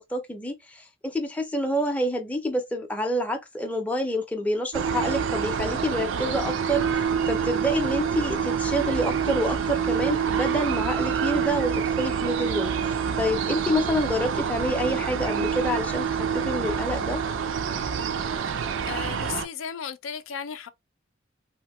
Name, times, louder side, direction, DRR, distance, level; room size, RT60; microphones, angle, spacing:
voice 1, 0.0-17.2, equal, 5° left, 0.4 m, -28 dB
sound 1, 4.7-19.5, right 7 dB, 75° right, 0.4 m, -27 dB
voice 2, 18.8-20.7, left 7 dB, 90° left, 0.4 m, -35 dB
2.8 x 2.1 x 2.9 m
head